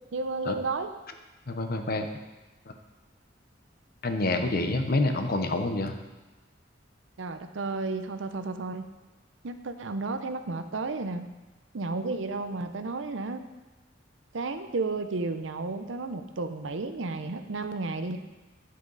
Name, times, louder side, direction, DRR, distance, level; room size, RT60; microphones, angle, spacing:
voice 1, 0.1-0.9 7.2-8.9 9.4-11.3 11.7-13.5 14.3-18.2, right 3 dB, 85° right, 9 dB, 0.7 m, -32 dB
voice 2, 1.5-2.1 4.0-5.9, left 2 dB, 55° left, 6 dB, 0.9 m, -27 dB
9.5 x 8.3 x 4.0 m, 1.1 s
head